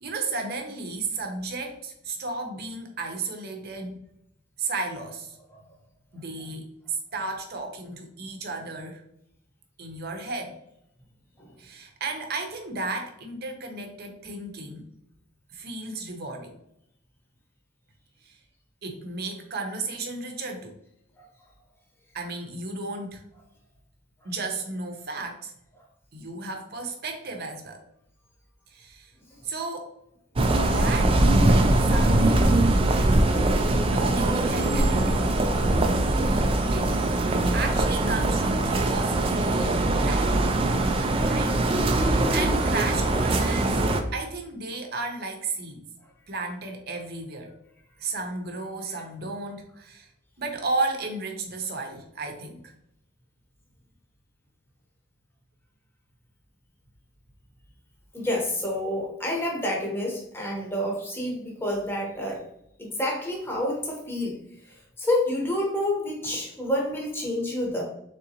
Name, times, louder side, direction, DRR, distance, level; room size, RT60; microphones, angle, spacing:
voice 1, 0.0-4.0 4.6-5.4 6.1-9.0 9.8-10.6 11.6-14.9 15.5-16.5 18.2-18.4 18.8-20.8 22.1-23.2 24.2-25.5 26.1-27.8 28.7-29.1 29.4-29.9 30.7-31.2 31.8-32.6 33.7-35.2 36.2-37.0 37.5-40.4 41.2-41.5 42.0-43.9 44.1-45.8 46.3-47.5 48.0-50.1 50.4-52.7, right 3 dB, 50° right, 3 dB, 0.8 m, -34 dB
sound 1, 30.4-44.0, right 2 dB, 25° right, 0.4 m, -22 dB
voice 2, 58.1-62.4 62.8-64.4 64.7-67.8, left 1 dB, 10° left, -2 dB, 0.9 m, -28 dB
3.8 x 3.6 x 2.8 m, 0.76 s
head